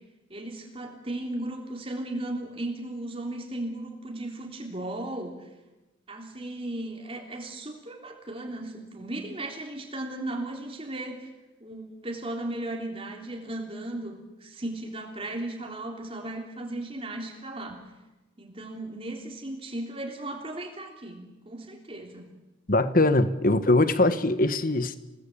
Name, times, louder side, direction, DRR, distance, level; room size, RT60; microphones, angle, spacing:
voice 1, 0.3-5.5 6.1-11.3 11.6-17.8 18.4-22.3, right 1 dB, 30° right, 1 dB, 3.5 m, -36 dB
voice 2, 22.7-25.0, left 2 dB, 45° left, 11 dB, 1.3 m, -22 dB
28.5 x 19.0 x 8.6 m, 1.1 s
head